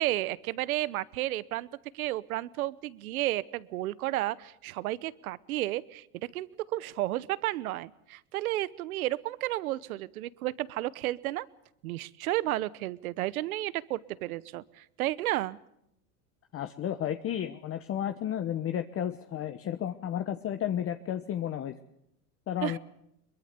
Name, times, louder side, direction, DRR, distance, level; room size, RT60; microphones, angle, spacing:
voice 1, 0.0-1.7 1.9-11.5 11.8-15.6 22.6-22.8, right 16 dB, 90° right, 20 dB, 1.0 m, -32 dB
voice 2, 16.5-21.7 22.5-22.8, left 10 dB, 30° left, 9 dB, 1.1 m, -32 dB
23.0 x 22.0 x 6.7 m, 0.78 s
supercardioid pair, 115°, 41 cm